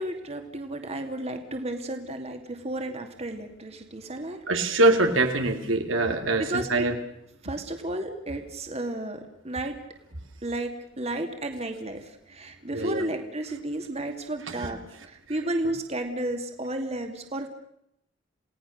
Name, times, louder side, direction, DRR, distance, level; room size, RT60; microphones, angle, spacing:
voice 1, 0.0-4.4 6.4-6.9 7.4-9.2 9.4-9.8 10.4-17.5, right 1 dB, 35° right, 5 dB, 2.4 m, -32 dB
voice 2, 4.5-6.4 6.7-6.9 12.7-13.0, right 2 dB, 85° right, 5 dB, 2.9 m, -23 dB
29.0 x 18.0 x 6.6 m, 0.75 s
head